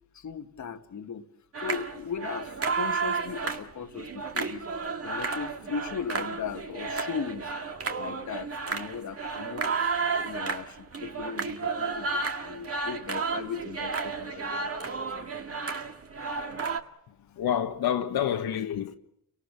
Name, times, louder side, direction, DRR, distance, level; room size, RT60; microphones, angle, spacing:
voice 1, 0.1-1.3 1.6-4.7 5.0-7.5 7.9-9.9 10.2-14.7 15.2-15.3, left 6 dB, 45° left, 1.7 m, -37 dB
sound 1, 1.5-16.8, right 4 dB, 35° right, 2.1 m, -32 dB
voice 2, 17.4-18.9, left 9 dB, 65° left, 1.6 m, -28 dB
30.0 x 18.5 x 7.4 m
supercardioid pair, 65°, 39 cm